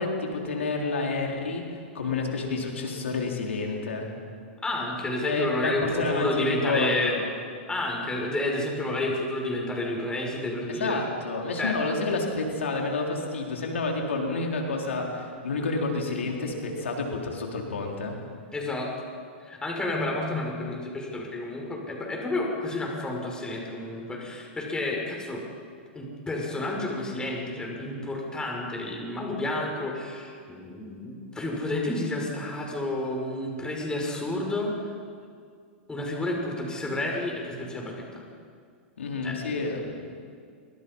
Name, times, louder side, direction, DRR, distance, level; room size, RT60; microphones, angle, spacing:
voice 1, 0.0-4.1 5.2-7.3 10.7-18.2 39.0-39.8, left 3 dB, 90° left, 0 dB, 4.3 m, -29 dB
voice 2, 4.6-7.1 7.7-11.0 11.6-11.7 14.4-14.5 18.5-18.9 19.4-25.4 25.9-34.7 35.9-38.0 39.2-39.6, left 2 dB, 10° left, 0 dB, 6.5 m, -30 dB
27.5 x 25.0 x 5.7 m, 2.2 s
hypercardioid pair, 120°, 7 cm